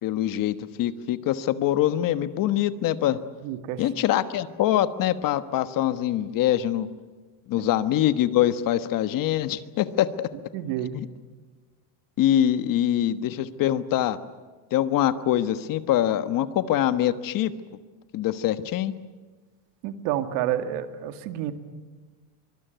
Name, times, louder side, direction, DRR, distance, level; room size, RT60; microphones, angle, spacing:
voice 1, 0.0-3.2 3.8-6.9 7.5-10.3 12.2-14.2 14.7-17.5 18.1-18.9, left 12 dB, 45° left, 12 dB, 1.4 m, -24 dB
voice 2, 3.4-3.8 7.6-7.7 10.5-11.0 19.8-21.5, right 11 dB, 65° right, 8 dB, 2.3 m, -29 dB
25.0 x 23.5 x 9.3 m, 1.4 s
cardioid pair, 145°, 47 cm